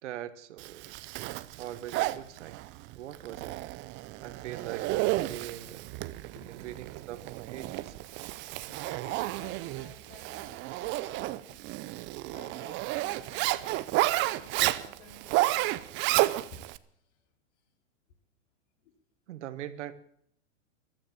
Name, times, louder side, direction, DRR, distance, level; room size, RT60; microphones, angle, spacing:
voice 1, 0.0-0.9 1.6-2.6 2.9-3.6 4.2-5.8 6.4-7.9 19.3-19.9, right 12 dB, 65° right, 13 dB, 1.4 m, -41 dB
Zipper (clothing), 0.6-16.8, right 18 dB, 30° right, 0.6 m, -32 dB
voice 2, 6.1-6.7 8.4-11.6 11.9-16.2 16.5-16.7 18.8-18.9, left 4 dB, 60° left, 4 dB, 4.0 m, -54 dB
15.0 x 12.5 x 7.3 m, 0.65 s
hypercardioid pair, 120°, 39 cm